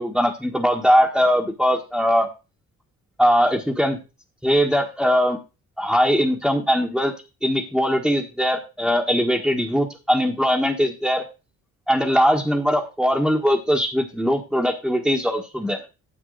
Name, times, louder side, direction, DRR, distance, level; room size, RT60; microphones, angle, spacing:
voice 1, 0.0-2.3 3.2-4.0 4.4-5.4 5.8-7.1 7.4-11.2 11.9-15.8, equal, ahead, -2 dB, 1.5 m, -20 dB
10.0 x 7.2 x 4.0 m, 0.30 s
cardioid pair, 90°, 30 cm